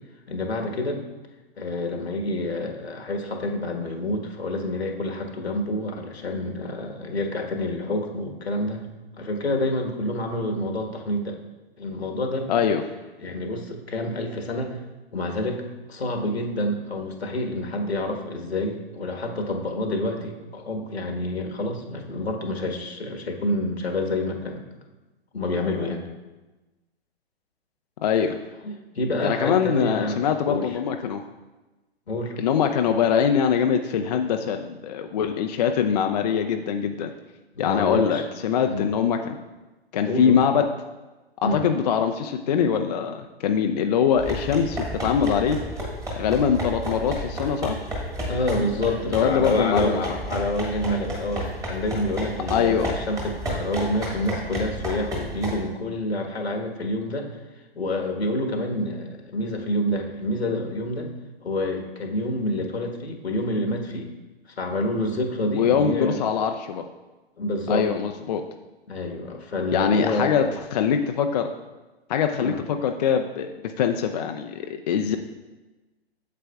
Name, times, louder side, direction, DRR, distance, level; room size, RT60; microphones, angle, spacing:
voice 1, 0.3-1.0 1.6-11.4 11.8-12.5 13.2-14.8 15.1-24.6 25.3-26.1 28.6-30.2 30.5-30.8 32.1-32.4 37.5-38.3 38.6-38.9 40.1-40.4 41.4-41.6 48.3-57.3 57.7-61.1 61.4-64.1 64.6-66.2 67.4-67.9 68.9-70.5 72.4-72.6, left 1 dB, 80° left, 2 dB, 1.3 m, -28 dB
voice 2, 12.5-12.8 28.0-28.3 29.2-31.2 32.4-37.1 37.6-39.3 39.9-40.6 41.4-45.6 46.2-47.8 49.1-50.0 52.5-52.9 65.5-66.8 67.7-68.4 69.7-70.5 70.7-71.5 72.1-73.5 73.8-75.2, left 7 dB, 40° left, 5 dB, 0.4 m, -23 dB
sound 1, 44.2-55.6, equal, 10° right, 1.5 m, -32 dB
8.2 x 7.6 x 2.3 m, 1.2 s
figure-of-eight pair, 120°, 31 cm